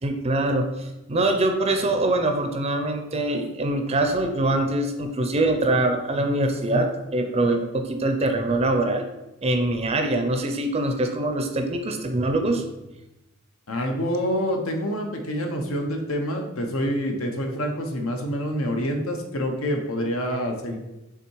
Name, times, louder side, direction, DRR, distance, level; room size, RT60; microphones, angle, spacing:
voice 1, 0.0-9.0 9.4-12.6, right 2 dB, 30° right, 5 dB, 0.5 m, -23 dB
voice 2, 13.7-20.8, equal, 80° left, 3 dB, 1.0 m, -27 dB
5.9 x 3.6 x 4.6 m, 0.97 s
head